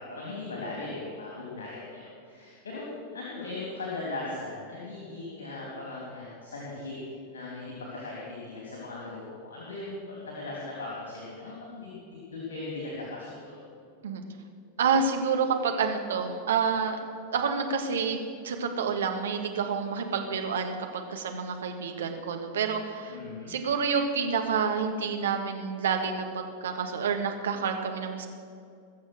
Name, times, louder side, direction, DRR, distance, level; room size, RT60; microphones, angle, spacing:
voice 1, 0.0-2.9 3.1-7.0 7.3-13.5 23.1-23.5, left 2 dB, 65° left, -4 dB, 3.3 m, -38 dB
voice 2, 14.8-17.0 17.3-23.2 23.5-28.3, right 5 dB, 65° right, 4 dB, 1.6 m, -28 dB
21.0 x 7.3 x 6.3 m, 2.4 s
figure-of-eight pair, 90°, 0 cm